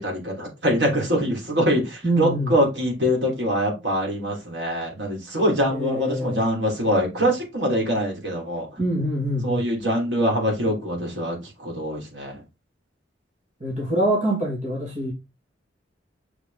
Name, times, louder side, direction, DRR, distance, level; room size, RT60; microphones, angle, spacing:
voice 1, 0.0-8.8 9.4-12.4, equal, 70° right, 3.3 m, -24 dB
voice 2, 2.0-2.5 5.7-6.4 8.8-9.7 13.6-15.1, right 1 dB, 40° right, 2.1 m, -25 dB
6.7 x 4.9 x 3.6 m
head